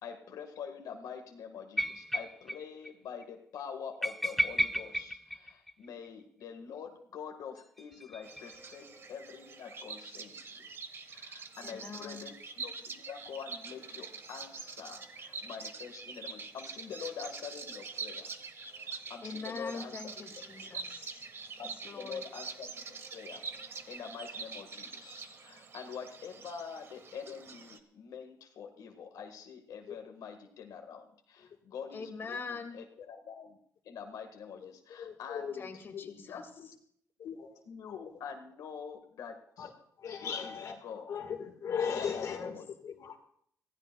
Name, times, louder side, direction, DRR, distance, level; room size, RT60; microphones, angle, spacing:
voice 1, 0.0-10.5 11.1-12.3 12.6-18.3 18.8-20.1 21.6-22.7 23.1-23.4 23.9-33.6 33.8-35.7 36.3-36.7 37.2-37.4 37.6-39.7 40.2-41.1 41.9-42.7, left 7 dB, 80° left, 4 dB, 1.5 m, -45 dB
sound 1, 1.8-2.6 2.8-2.9 3.2-3.3 4.0-6.1 7.6-8.8, equal, ahead, 0.4 m, -33 dB
Bird vocalization bird call bird song, 8.2-27.8, right 4 dB, 40° right, 1.2 m, -45 dB
voice 2, 11.6-12.3 19.2-21.3 21.6-22.3 31.9-32.8 35.5-36.4 42.1-42.5, left 4 dB, 40° left, 3 dB, 2.1 m, -43 dB
voice 3, 35.0-35.5 35.9-36.1 39.6-39.7 40.0-40.7 41.1-42.6 42.8-43.2, left 7 dB, 65° left, 1 dB, 1.5 m, -36 dB
24.5 x 16.0 x 2.2 m, 0.66 s
cardioid pair, 145°, 6 cm